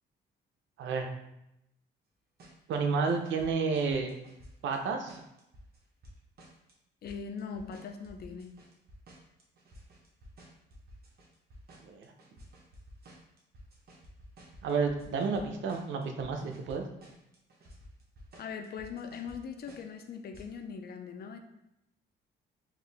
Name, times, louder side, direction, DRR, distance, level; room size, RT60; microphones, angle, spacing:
voice 1, 0.8-1.1 2.7-4.1 4.6-5.2 11.8-12.1 14.6-16.9, right 5 dB, 70° right, 4 dB, 0.6 m, -31 dB
sound 1, 2.4-2.7 3.1-4.8 5.1-6.7 7.1-15.4 15.7-16.8 17.0-19.4 19.7-20.0 20.3-20.5, equal, 50° right, 1.0 m, -53 dB
voice 2, 7.0-8.5 18.4-21.4, left 6 dB, 50° left, 5 dB, 0.5 m, -41 dB
3.7 x 2.6 x 3.3 m, 0.84 s
cardioid pair, 90°, 20 cm